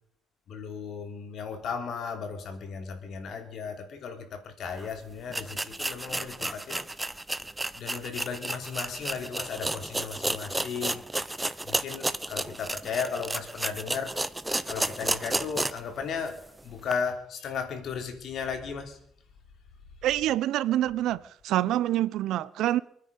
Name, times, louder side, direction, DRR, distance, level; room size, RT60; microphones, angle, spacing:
voice 1, 0.5-6.8 7.8-11.0 11.6-14.1 14.7-16.4 16.6-19.0, left 6 dB, 70° left, 3.1 m, -35 dB
sound 1, 4.8-4.9 5.3-15.9 16.3-16.4 16.9-17.0, right 2 dB, 10° right, 0.7 m, -32 dB
voice 2, 20.0-22.8, right 13 dB, 85° right, 0.6 m, -26 dB
25.0 x 9.8 x 5.3 m
cardioid pair, 90°, 0 cm